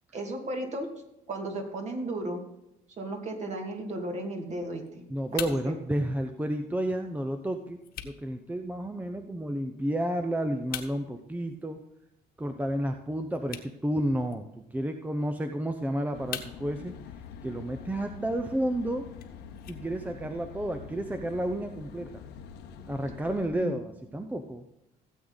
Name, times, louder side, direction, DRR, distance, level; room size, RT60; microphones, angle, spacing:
voice 1, 0.1-0.9 1.3-2.4 3.0-5.0 5.6-5.7 23.5-23.7, right 1 dB, 45° right, 3 dB, 2.6 m, -34 dB
sound 1, 4.5-20.5, left 10 dB, 60° left, 1.4 m, -47 dB
voice 2, 5.1-7.8 8.0-11.8 12.4-16.9 17.4-19.1 19.7-22.2 22.8-24.6, right 1 dB, 10° right, 6 dB, 0.7 m, -31 dB
sound 2, 16.1-23.5, left 7 dB, 90° left, 1.2 m, -45 dB
16.5 x 8.0 x 4.0 m, 0.89 s
cardioid pair, 110°, 17 cm